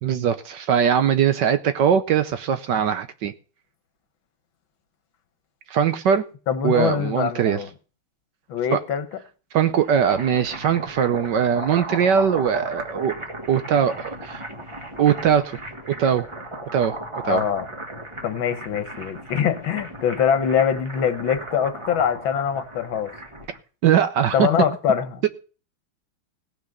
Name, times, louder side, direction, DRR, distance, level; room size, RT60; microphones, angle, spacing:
voice 1, 0.0-3.3 5.7-6.2 6.6-7.6 8.7-8.8 9.5-13.2 13.5-14.4 15.0-15.6 15.9-16.3 16.7-17.0 17.2-17.4 23.8-24.5, right 8 dB, 65° right, 1.3 m, -21 dB
voice 2, 6.5-7.7 8.5-9.1 17.2-17.7 18.2-23.1 24.3-25.2, left 8 dB, 70° left, 1.8 m, -23 dB
sound 1, 9.7-23.6, right 1 dB, 15° right, 1.4 m, -36 dB
17.0 x 6.1 x 6.6 m
omnidirectional pair, 2.3 m